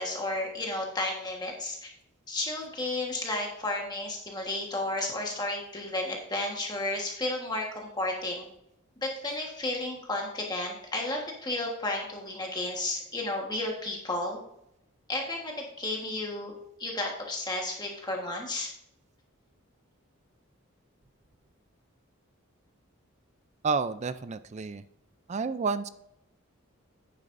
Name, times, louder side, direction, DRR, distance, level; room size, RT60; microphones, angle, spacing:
voice 1, 0.0-1.9 2.3-8.5 9.0-14.4 15.1-16.5 16.8-18.7, left 2 dB, 20° left, 0 dB, 1.3 m, -32 dB
voice 2, 23.6-24.8 25.3-25.9, right 4 dB, 30° right, 13 dB, 0.4 m, -30 dB
11.0 x 9.4 x 2.6 m, 0.81 s
head